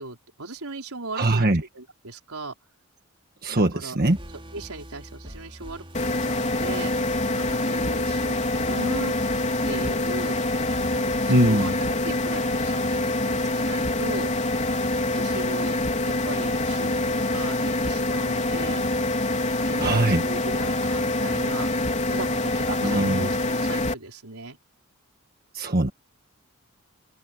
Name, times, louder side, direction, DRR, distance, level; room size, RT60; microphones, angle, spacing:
voice 1, 0.0-1.5 1.7-2.5 3.5-4.0 4.5-6.9 7.3-9.1 9.6-10.4 10.9-14.3 15.1-15.8 16.1-18.8 19.5-21.7 22.1-24.6, right 2 dB, 75° right, 4.3 m, -37 dB
voice 2, 1.1-1.6 3.4-4.2 11.3-11.7 19.8-20.2 22.8-23.3 25.5-25.9, right 1 dB, 45° right, 1.6 m, -21 dB
sound 1, 4.0-11.9, equal, 25° right, 5.0 m, -42 dB
sound 2, 5.9-23.9, left 2 dB, 30° left, 3.9 m, -25 dB
open air
head